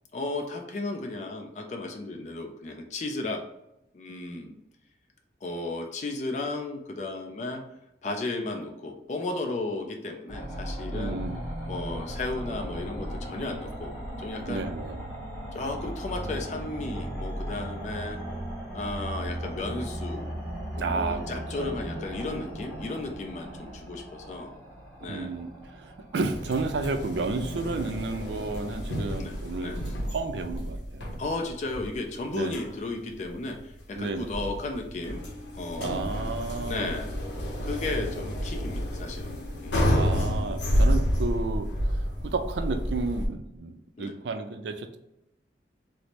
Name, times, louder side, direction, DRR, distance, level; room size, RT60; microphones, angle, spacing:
voice 1, 0.1-3.4 3.9-4.5 5.4-7.6 8.0-11.2 11.7-13.9 14.2-14.7 15.5-18.2 18.7-20.3 20.7-24.5 25.0-25.4 26.5-26.6 29.2-29.8 31.2-35.2 35.6-36.0 36.7-37.1 37.6-39.3 39.6-39.9 44.0-44.1, left 2 dB, 40° left, 3 dB, 0.4 m, -34 dB
sound 1, 10.3-29.0, equal, 5° left, 1.0 m, -37 dB
voice 2, 10.9-11.4 14.5-15.0 20.8-21.3 21.6-21.8 25.1-31.2 32.3-32.6 34.0-34.3 35.8-37.0 39.9-41.7 42.2-45.0, right 3 dB, 75° right, 7 dB, 0.4 m, -32 dB
sound 2, 26.3-43.3, equal, 85° left, 0.7 m, -30 dB
3.0 x 2.0 x 4.1 m, 0.84 s
head